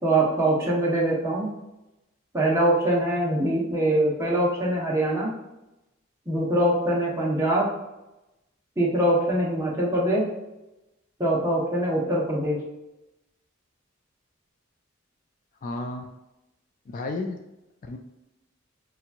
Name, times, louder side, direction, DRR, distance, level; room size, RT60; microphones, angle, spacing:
voice 1, 0.0-1.5 2.3-5.3 6.3-7.7 8.8-10.2 11.2-12.6, right 1 dB, 15° right, -5 dB, 1.0 m, -23 dB
voice 2, 15.6-16.1 16.9-17.4 17.8-18.0, left 2 dB, 40° left, 4 dB, 0.3 m, -32 dB
4.5 x 2.9 x 2.5 m, 0.95 s
head